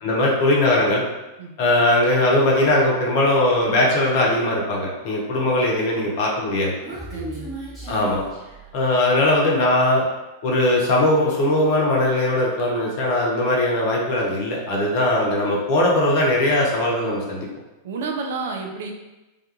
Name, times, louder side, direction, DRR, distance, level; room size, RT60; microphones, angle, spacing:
voice 1, 0.0-1.0 1.6-6.7 7.9-8.2 8.7-10.1 10.4-17.5, left 1 dB, 45° left, -2 dB, 0.6 m, -20 dB
Human voice, 6.4-9.3, right 1 dB, 15° right, 1.0 m, -37 dB
voice 2, 7.1-7.5 17.8-18.9, right 4 dB, 60° right, 2 dB, 0.3 m, -30 dB
2.3 x 2.3 x 2.8 m, 1.0 s
figure-of-eight pair, 90°, 0 cm